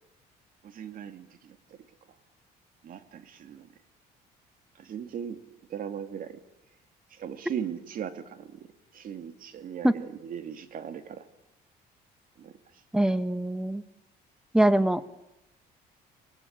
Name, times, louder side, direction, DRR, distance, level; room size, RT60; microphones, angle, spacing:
voice 1, 0.6-1.6 2.8-3.7 4.8-5.4 5.7-6.4 7.2-8.5 8.9-11.2 12.4-12.5, right 8 dB, 55° right, 10 dB, 2.3 m, -38 dB
voice 2, 12.9-13.8 14.5-15.0, right 1 dB, 5° right, 13 dB, 1.3 m, -23 dB
25.0 x 19.0 x 8.8 m, 0.89 s
cardioid pair, 110°, 17 cm